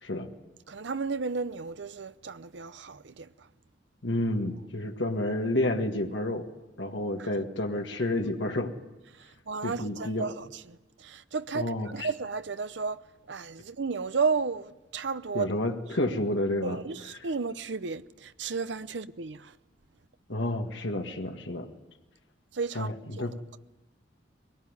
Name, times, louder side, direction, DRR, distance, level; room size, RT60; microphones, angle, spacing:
voice 1, 0.7-3.5 7.2-7.3 9.1-13.0 13.3-15.5 16.6-19.6 22.5-23.3, right 4 dB, 70° right, 0.7 m, -33 dB
voice 2, 4.0-6.5 6.8-8.7 9.6-10.3 11.5-12.1 15.3-16.8 20.3-21.7 22.8-23.3, left 1 dB, 75° left, 1.8 m, -30 dB
22.0 x 19.0 x 9.7 m
head